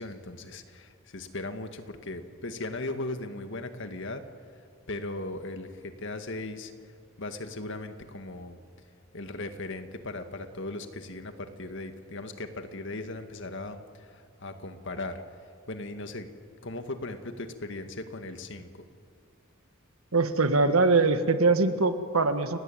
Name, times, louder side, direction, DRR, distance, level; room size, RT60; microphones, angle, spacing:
voice 1, 0.0-4.2 4.9-6.7 7.2-8.6 9.1-15.2 15.7-16.3 16.6-18.9, left 2 dB, 60° left, 7 dB, 1.9 m, -38 dB
voice 2, 20.1-22.6, right 3 dB, 80° right, 9 dB, 1.6 m, -23 dB
29.5 x 17.0 x 9.2 m, 2.2 s
head